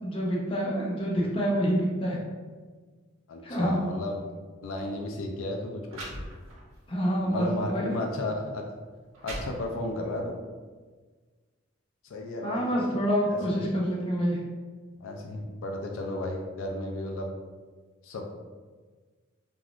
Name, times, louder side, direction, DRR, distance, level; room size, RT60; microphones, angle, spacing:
voice 1, 0.0-2.2 3.4-3.8 6.9-8.0 12.4-14.4, equal, 25° left, -3 dB, 0.5 m, -27 dB
voice 2, 3.3-4.2 4.6-6.1 7.2-8.7 9.2-10.4 12.0-12.7 13.3-13.4 15.0-17.3 18.0-18.3, left 1 dB, 75° left, 2 dB, 0.4 m, -33 dB
sound 1, 4.6-4.8 5.5-5.6 5.9-6.8 7.4-7.5 8.3-8.4 8.9-10.0, right 1 dB, 85° right, 0.8 m, -40 dB
3.4 x 2.4 x 2.3 m, 1.4 s
head